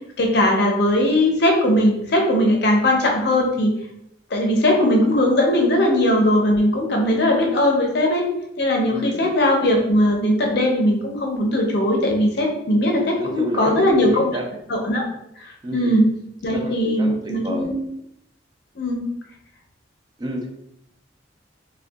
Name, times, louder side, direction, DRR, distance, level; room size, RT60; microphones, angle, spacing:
voice 1, 0.2-3.7 4.3-8.3 8.6-14.3 14.7-15.1 15.4-15.5 15.7-16.0 16.4-17.8 18.8-19.1, left 1 dB, 60° left, 1 dB, 0.5 m, -19 dB
voice 2, 8.9-9.3 12.9-14.4 15.6-16.0 16.5-17.7 20.2-20.5, right 1 dB, 25° right, 2 dB, 0.3 m, -31 dB
2.6 x 2.2 x 2.3 m, 0.78 s
head